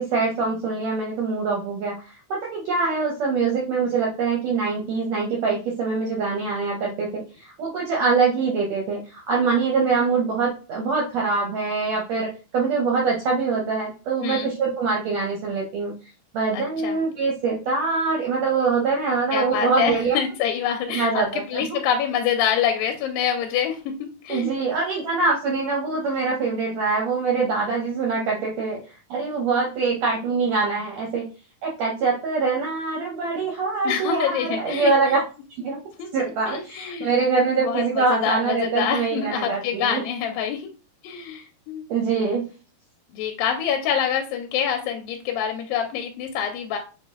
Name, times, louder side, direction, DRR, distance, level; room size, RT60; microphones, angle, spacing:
voice 1, 0.0-2.0 2.3-15.9 16.3-20.2 20.9-21.3 21.5-21.8 24.3-28.8 29.1-31.3 31.6-35.2 35.6-35.8 36.1-40.0 41.9-42.5, right 4 dB, 80° right, -1 dB, 1.5 m, -24 dB
voice 2, 14.2-14.5 16.5-17.0 19.3-24.5 33.8-35.2 36.0-36.1 36.5-37.1 37.6-40.7 41.0-41.9 43.1-46.8, left 8 dB, 85° left, 4 dB, 2.3 m, -26 dB
6.4 x 2.1 x 3.4 m, 0.33 s
omnidirectional pair, 4.0 m